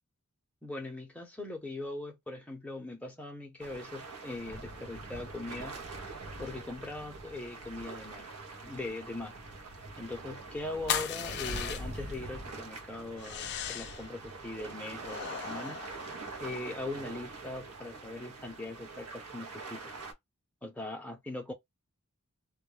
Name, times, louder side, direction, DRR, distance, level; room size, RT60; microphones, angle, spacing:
voice 1, 0.6-5.8 6.4-8.2 8.6-9.4 10.0-15.8 16.4-19.8 20.6-21.5, left 2 dB, 5° left, 0.6 m, -40 dB
sound 1, 3.6-20.1, right 3 dB, 85° right, 0.7 m, -44 dB
sound 2, 10.9-12.1 13.2-14.1 15.0-16.7, left 9 dB, 50° left, 0.3 m, -37 dB
2.2 x 2.1 x 3.1 m
head